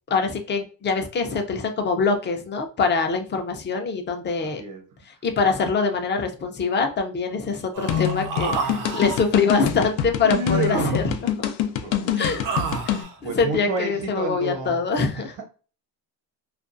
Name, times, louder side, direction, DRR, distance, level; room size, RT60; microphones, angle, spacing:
voice 1, 0.1-4.6 5.1-11.5 12.2-12.4 12.9-15.3, left 4 dB, 25° left, 4 dB, 0.5 m, -24 dB
voice 2, 4.4-4.9 11.8-12.3 13.2-14.8 15.1-15.3, right 3 dB, 70° right, 4 dB, 1.0 m, -31 dB
Human voice, 7.7-9.2 10.2-11.1 12.0-13.2, right 5 dB, 45° right, 0.5 m, -29 dB
sound 1, 7.9-13.0, left 10 dB, 80° left, 0.6 m, -25 dB
2.4 x 2.3 x 2.5 m, 0.36 s
cardioid pair, 115°, 46 cm